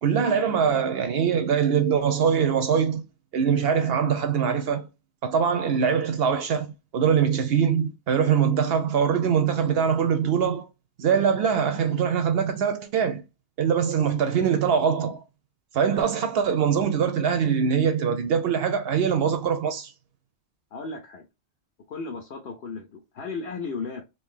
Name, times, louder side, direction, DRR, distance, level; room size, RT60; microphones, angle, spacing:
voice 1, 0.0-3.1 3.3-4.9 5.2-10.7 11.0-13.2 13.6-15.2 15.7-19.9, right 7 dB, 70° right, 0.8 m, -23 dB
voice 2, 20.7-21.3 21.9-24.0, left 4 dB, 70° left, 1.0 m, -35 dB
2.8 x 2.7 x 3.6 m
omnidirectional pair, 1.1 m